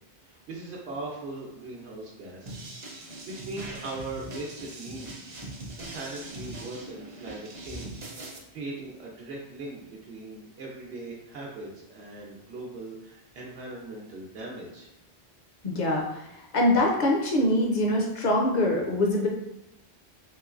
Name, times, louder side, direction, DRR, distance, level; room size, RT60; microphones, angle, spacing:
voice 1, 0.2-2.6 2.9-5.4 5.8-14.9, right 2 dB, 85° right, -3 dB, 0.9 m, -40 dB
sound 1, 2.5-8.4, right 2 dB, 45° right, 0.5 m, -41 dB
voice 2, 15.6-16.3 16.5-19.3, left 1 dB, 50° left, -1 dB, 0.6 m, -24 dB
3.1 x 3.0 x 2.4 m, 0.86 s
omnidirectional pair, 1.1 m